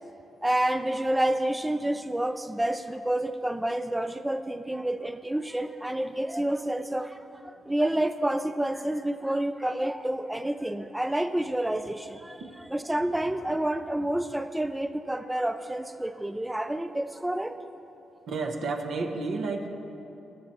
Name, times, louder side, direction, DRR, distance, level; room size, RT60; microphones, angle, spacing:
voice 1, 0.4-12.4 12.7-17.6, right 1 dB, 10° right, 9 dB, 0.4 m, -29 dB
voice 2, 18.3-19.7, right 3 dB, 70° right, 3 dB, 1.1 m, -31 dB
18.5 x 6.4 x 4.3 m, 2.9 s
supercardioid pair, 60°, 0 cm